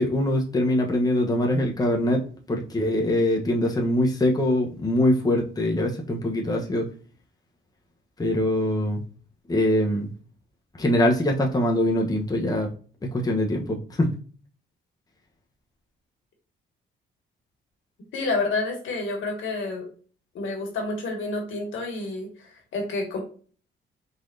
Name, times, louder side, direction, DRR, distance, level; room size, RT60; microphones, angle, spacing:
voice 1, 0.0-6.9 8.2-9.0 9.5-10.1 10.8-12.7 13.0-14.1, left 1 dB, 20° left, 1 dB, 1.0 m, -23 dB
voice 2, 18.1-19.8 20.3-23.2, left 3 dB, 75° left, 2 dB, 1.9 m, -29 dB
4.6 x 4.1 x 2.7 m, 0.41 s
cardioid pair, 90°, 20 cm